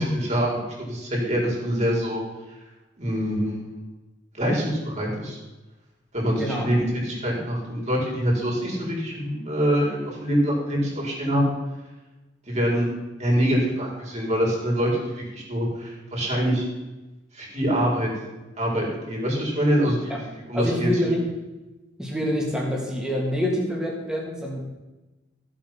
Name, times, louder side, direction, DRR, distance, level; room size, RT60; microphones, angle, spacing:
voice 1, 0.0-2.2 3.0-3.6 4.3-5.4 6.1-11.5 12.5-12.9 13.2-14.9 15.3-16.6 17.3-18.1 18.6-20.9, equal, 40° right, -2 dB, 4.4 m, -24 dB
voice 2, 6.3-6.7 20.1-20.2 20.5-21.3 22.0-24.6, equal, 5° right, -2 dB, 3.0 m, -26 dB
14.5 x 8.1 x 5.9 m, 1.1 s
head